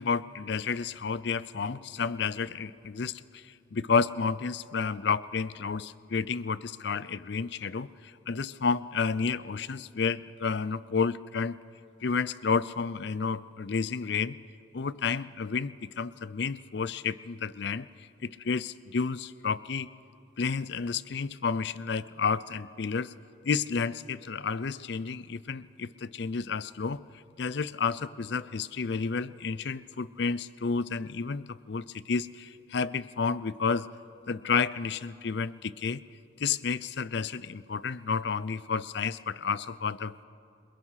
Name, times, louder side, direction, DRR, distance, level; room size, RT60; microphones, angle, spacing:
voice 1, 0.0-3.4 3.7-7.9 8.3-11.6 12.0-14.4 14.7-17.9 18.2-19.9 20.4-23.1 23.4-27.0 27.4-33.9 34.3-36.0 36.4-40.2, left 5 dB, 60° left, 18 dB, 0.5 m, -31 dB
28.0 x 21.5 x 5.8 m, 2.5 s
head